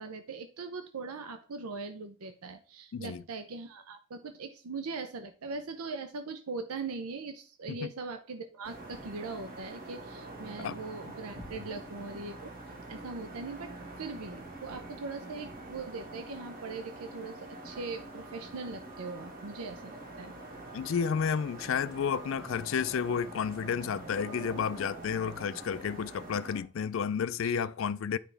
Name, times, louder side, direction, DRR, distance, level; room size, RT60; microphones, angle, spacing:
voice 1, 0.0-12.5 12.9-13.7 14.0-20.3 27.4-27.5, right 4 dB, 90° right, 0.6 m, -40 dB
voice 2, 2.9-3.2 7.7-7.8 10.6-10.8 20.7-28.2, left 7 dB, 65° left, 0.3 m, -31 dB
sound 1, 8.6-26.6, right 2 dB, 40° right, 1.4 m, -45 dB
sound 2, 11.4-22.0, left 1 dB, ahead, 0.8 m, -55 dB
9.1 x 4.7 x 3.3 m
head